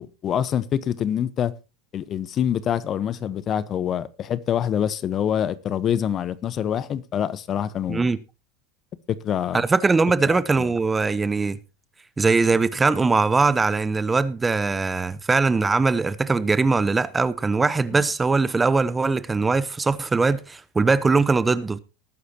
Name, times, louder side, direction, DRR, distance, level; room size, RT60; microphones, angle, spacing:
voice 1, 0.0-1.5 1.9-8.1 9.1-9.6 10.3-10.7, left 9 dB, 40° left, 1.0 m, -25 dB
voice 2, 9.5-11.6 12.2-21.8, right 4 dB, 15° right, 0.9 m, -21 dB
19.5 x 9.4 x 2.9 m
hypercardioid pair, 95°, 0 cm